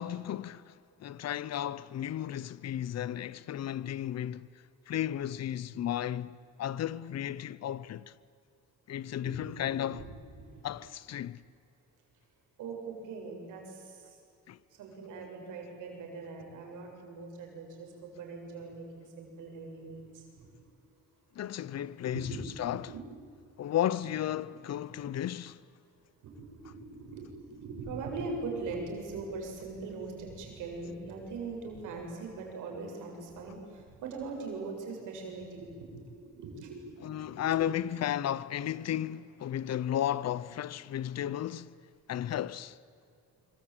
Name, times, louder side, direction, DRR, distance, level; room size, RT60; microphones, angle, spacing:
voice 1, 0.0-4.5 4.9-8.1 8.9-10.0 10.6-11.4 14.5-14.6 21.3-22.3 22.6-22.9 23.6-25.6 37.0-41.7 42.1-42.8, left 11 dB, 60° left, 0.8 m, -34 dB
voice 2, 9.3-10.0 10.4-10.6 12.6-14.2 14.7-20.5 22.1-23.1 26.2-36.9 37.1-37.6, right 3 dB, 90° right, 7.5 m, -41 dB
25.5 x 25.0 x 9.0 m
cardioid pair, 90°, 30 cm